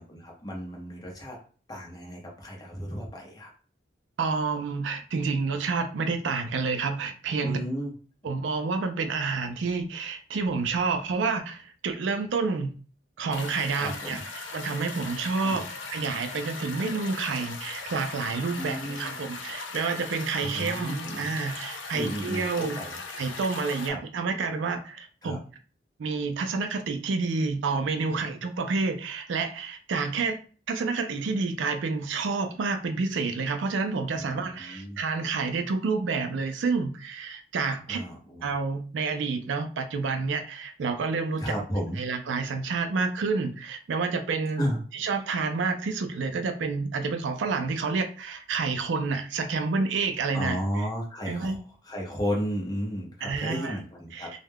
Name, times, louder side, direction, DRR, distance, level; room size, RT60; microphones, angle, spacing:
voice 1, 0.0-1.4 1.7-3.5 7.4-7.9 13.8-14.2 15.4-15.6 18.6-19.1 20.4-21.3 21.9-23.0 23.9-24.0 25.2-25.4 28.1-28.4 34.1-35.0 37.9-38.5 41.4-42.0 44.6-44.8 50.3-54.3, equal, 20° left, -1 dB, 0.7 m, -33 dB
voice 2, 4.2-7.6 8.2-12.7 13.2-15.7 15.9-22.8 23.2-25.4 26.0-30.4 30.7-38.0 38.4-41.5 42.0-44.7 44.9-50.6 51.3-51.6 53.2-53.8 54.1-54.3, right 4 dB, 75° right, 7 dB, 0.4 m, -29 dB
sound 1, 13.3-23.9, left 3 dB, 80° left, 0.5 m, -39 dB
2.2 x 2.1 x 3.3 m, 0.39 s
head